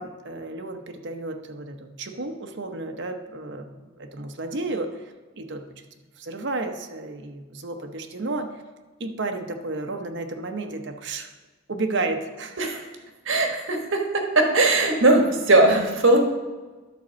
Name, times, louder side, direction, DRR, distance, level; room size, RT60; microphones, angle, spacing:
voice 1, 0.0-5.6 6.2-8.6 9.0-11.3 11.7-12.6, right 2 dB, 65° right, 5 dB, 0.8 m, -32 dB
voice 2, 13.3-14.0 14.3-16.2, right 2 dB, 85° right, 3 dB, 1.3 m, -19 dB
11.0 x 4.2 x 6.2 m, 1.3 s
head